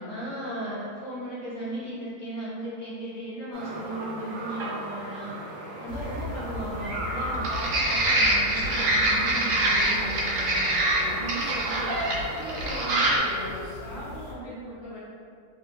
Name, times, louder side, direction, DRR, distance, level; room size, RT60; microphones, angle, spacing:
voice 1, 0.0-5.5 5.8-10.9, right 1 dB, 20° left, -10 dB, 1.1 m, -36 dB
sound 1, 3.5-13.2, right 1 dB, 65° right, 0.9 m, -27 dB
sound 2, 5.9-14.3, left 2 dB, 80° left, 1.2 m, -39 dB
voice 2, 10.9-15.0, equal, 40° left, -10 dB, 1.3 m, -39 dB
3.3 x 3.0 x 3.2 m, 2.3 s
omnidirectional pair, 1.7 m